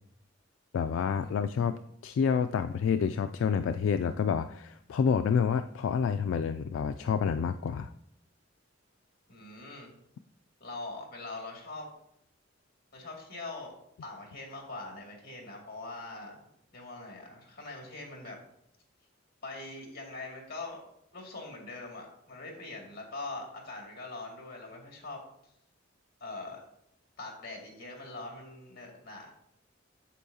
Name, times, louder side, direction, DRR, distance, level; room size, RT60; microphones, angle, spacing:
voice 1, 0.7-1.8 2.0-7.9, left 6 dB, 75° left, 9 dB, 0.3 m, -28 dB
voice 2, 9.3-9.9 10.6-11.9 12.9-13.7 14.0-16.5 16.7-18.4 19.4-20.8 21.1-25.2 26.2-26.6 27.2-29.3, left 2 dB, 55° left, 0 dB, 2.2 m, -42 dB
8.3 x 7.7 x 2.8 m, 0.74 s
head